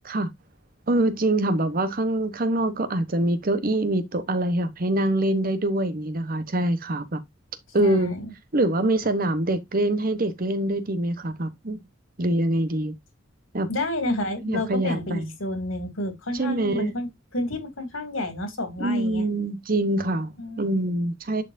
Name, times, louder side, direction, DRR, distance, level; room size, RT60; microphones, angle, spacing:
voice 1, 0.9-7.2 7.7-8.1 8.5-11.8 12.2-12.9 13.5-13.7 14.4-15.3 16.3-16.9 18.8-21.4, right 1 dB, 45° right, 1.0 m, -24 dB
voice 2, 7.8-8.3 13.7-19.3 20.4-20.8, left 1 dB, 85° left, 2.8 m, -30 dB
10.5 x 4.4 x 2.6 m
head